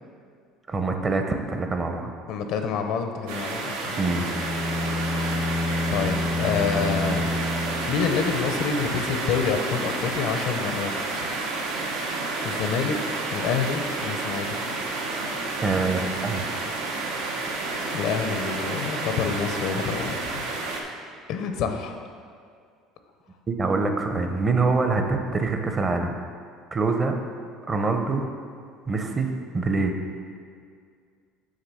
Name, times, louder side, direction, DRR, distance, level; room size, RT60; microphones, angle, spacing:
voice 1, 0.7-2.1 4.0-4.3 15.6-16.4 23.5-26.2 26.7-27.1 27.7-28.3 28.9-29.9, right 3 dB, 25° right, 5 dB, 0.7 m, -25 dB
voice 2, 2.3-4.0 5.9-7.3 7.9-11.3 12.4-12.9 13.3-14.6 17.9-20.4 21.3-21.9, left 6 dB, 70° left, 6 dB, 0.6 m, -27 dB
sound 1, 3.3-20.8, right 3 dB, 90° right, 0.9 m, -30 dB
sound 2, 4.2-8.6, left 2 dB, 10° left, 0.5 m, -29 dB
6.5 x 3.8 x 6.2 m, 2.1 s
supercardioid pair, 110°, 0 cm